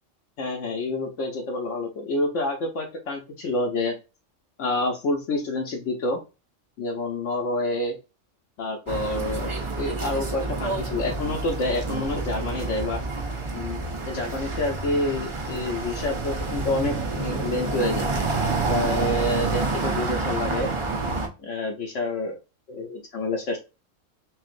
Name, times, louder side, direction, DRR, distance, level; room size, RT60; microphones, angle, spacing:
voice 1, 0.4-4.0 4.6-6.2 6.8-8.0 8.6-13.0 13.5-18.1 18.7-20.7 21.4-22.4 22.7-23.6, left 2 dB, 70° left, 0 dB, 1.1 m, -28 dB
sound 1, 8.9-21.3, right 3 dB, 35° right, 0.5 m, -28 dB
5.7 x 2.5 x 2.5 m, 0.28 s
omnidirectional pair, 1.3 m